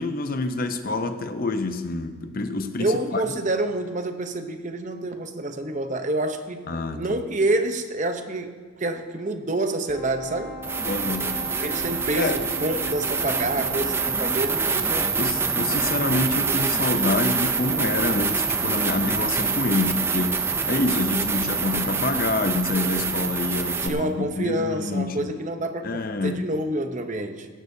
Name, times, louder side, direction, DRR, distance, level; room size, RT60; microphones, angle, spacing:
voice 1, 0.0-3.2 6.7-7.2 10.8-11.4 12.2-12.4 15.2-25.4 25.8-26.5, left 2 dB, 40° left, 9 dB, 0.6 m, -27 dB
voice 2, 2.8-10.6 11.6-15.1 23.8-27.5, right 2 dB, 35° right, 7 dB, 0.8 m, -28 dB
Brass instrument, 9.9-14.3, right 1 dB, 10° left, 2.9 m, -38 dB
sound 1, 9.9-10.0 10.6-23.9, right 5 dB, 10° right, 0.4 m, -25 dB
17.5 x 15.0 x 2.7 m, 1.6 s
head